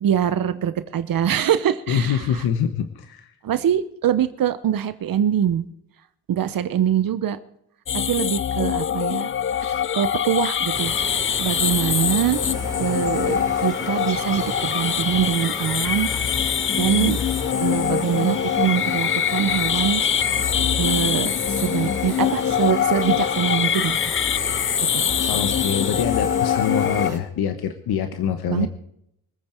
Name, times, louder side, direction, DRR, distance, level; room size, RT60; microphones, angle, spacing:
voice 1, 0.0-2.4 3.4-5.7 6.3-7.4 7.9-9.3 9.6-10.9 11.4-12.4 12.8-16.1 16.7-17.2 17.6-20.0 20.8-24.0 24.9-25.1 28.5-28.7, right 9 dB, 65° right, 12 dB, 1.0 m, -23 dB
voice 2, 1.9-3.3 25.0-28.7, left 8 dB, 80° left, 8 dB, 1.3 m, -25 dB
sound 1, 7.9-27.1, left 9 dB, 35° left, 0.5 m, -23 dB
sound 2, 10.7-27.2, right 2 dB, 10° right, 4.7 m, -35 dB
25.0 x 8.9 x 4.6 m, 0.74 s
cardioid pair, 110°, 37 cm